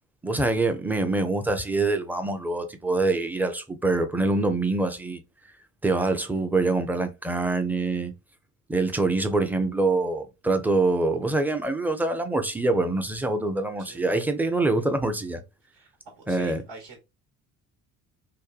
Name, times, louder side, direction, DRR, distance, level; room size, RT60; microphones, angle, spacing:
voice 1, 0.2-5.2 5.8-8.1 8.7-15.4 16.3-16.6, right 2 dB, 5° right, 0.5 m, -25 dB
voice 2, 16.2-17.0, right 3 dB, 70° right, 1.2 m, -46 dB
2.6 x 2.2 x 2.3 m
supercardioid pair, 75°, 37 cm